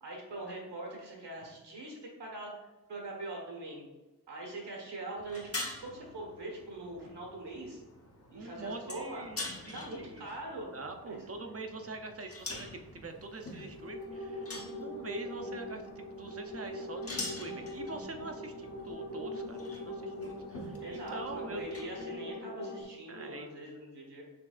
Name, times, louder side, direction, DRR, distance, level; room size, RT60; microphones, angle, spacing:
voice 1, 0.0-2.5 2.9-3.9 4.3-7.8 8.3-9.2 9.7-10.7 11.1-11.3 20.8-24.2, right 2 dB, 85° right, -2 dB, 1.4 m, -42 dB
sound 1, 5.2-22.0, left 2 dB, 35° left, 1.0 m, -46 dB
voice 2, 8.3-9.4 9.7-10.2 10.7-21.6 23.1-23.5, right 3 dB, 35° right, 5 dB, 0.6 m, -44 dB
sound 2, 13.4-22.8, left 1 dB, 70° left, 1.2 m, -42 dB
6.0 x 3.3 x 2.4 m, 1.1 s
cardioid pair, 60°, 40 cm